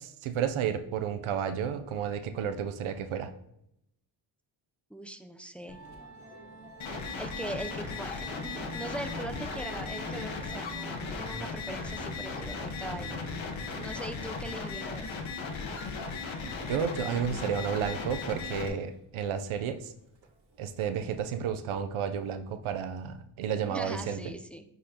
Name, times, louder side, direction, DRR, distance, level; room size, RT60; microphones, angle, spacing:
voice 1, 0.0-3.3 16.7-19.9 20.6-24.2, right 7 dB, 90° right, 8 dB, 0.7 m, -32 dB
voice 2, 4.9-5.8 7.2-13.2 13.8-15.1 23.7-24.6, right 1 dB, 5° left, 8 dB, 0.5 m, -41 dB
Musical instrument, 5.7-21.2, right 1 dB, 65° right, 1.7 m, -48 dB
sound 1, 6.8-18.7, left 4 dB, 70° left, 1.1 m, -37 dB
10.0 x 4.1 x 2.9 m, 0.77 s
cardioid pair, 80°, 47 cm